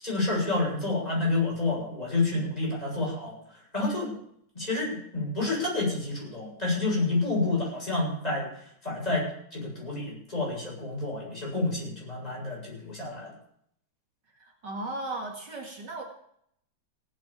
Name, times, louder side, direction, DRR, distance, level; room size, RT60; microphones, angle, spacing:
voice 1, 0.0-3.4 3.7-4.1 4.5-8.5 8.8-13.3, left 2 dB, 15° left, -4 dB, 8.0 m, -29 dB
voice 2, 14.3-16.0, right 2 dB, 55° right, 1 dB, 2.7 m, -36 dB
17.5 x 8.5 x 7.4 m, 0.70 s
omnidirectional pair, 2.3 m